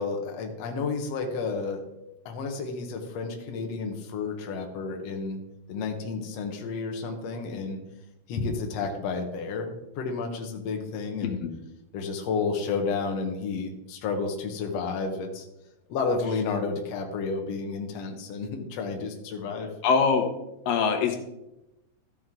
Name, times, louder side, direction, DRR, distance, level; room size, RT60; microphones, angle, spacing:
voice 1, 0.0-1.8 2.3-5.4 5.7-7.8 8.3-11.4 11.9-15.5 15.9-19.7, left 4 dB, 60° left, 3 dB, 2.0 m, -31 dB
voice 2, 19.8-20.3 20.7-21.2, left 5 dB, 80° left, 5 dB, 2.7 m, -23 dB
14.0 x 6.1 x 3.7 m, 0.91 s
omnidirectional pair, 4.0 m